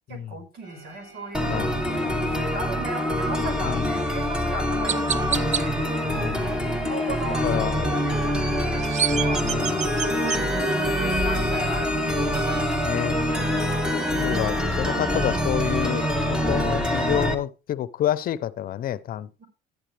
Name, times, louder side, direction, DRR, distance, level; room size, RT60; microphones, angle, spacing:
voice 1, 0.1-1.5 2.2-5.7 6.3-10.5 10.8-13.2 14.4-14.7 19.4-19.5, right 2 dB, 70° right, 5.2 m, -37 dB
sound 1, 0.6-17.1, right 1 dB, 25° right, 6.1 m, -38 dB
sound 2, 1.3-17.3, equal, 5° right, 1.9 m, -25 dB
voice 2, 1.5-2.2 3.6-4.0 6.0-6.7 7.4-7.9 9.4-9.9 12.8-13.2 14.2-19.3, left 11 dB, 60° left, 0.7 m, -29 dB
Chirp tweet, 4.0-4.1 4.9-5.6 8.6-10.4, right 7 dB, 45° right, 0.8 m, -27 dB
12.0 x 10.5 x 3.3 m
cardioid pair, 110°, 17 cm